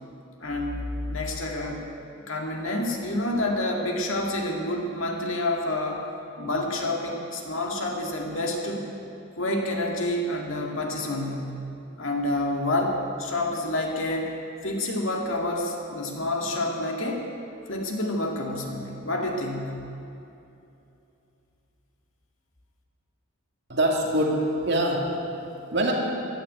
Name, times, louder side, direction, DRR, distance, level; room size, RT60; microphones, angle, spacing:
voice 1, 0.4-1.8 2.3-6.0 6.4-8.9 9.4-11.6 12.0-14.3 14.6-17.3 17.7-19.9, left 1 dB, 60° left, 1 dB, 2.2 m, -28 dB
voice 2, 23.7-25.9, right 1 dB, 50° right, -1 dB, 2.4 m, -25 dB
16.0 x 11.0 x 7.9 m, 2.7 s
head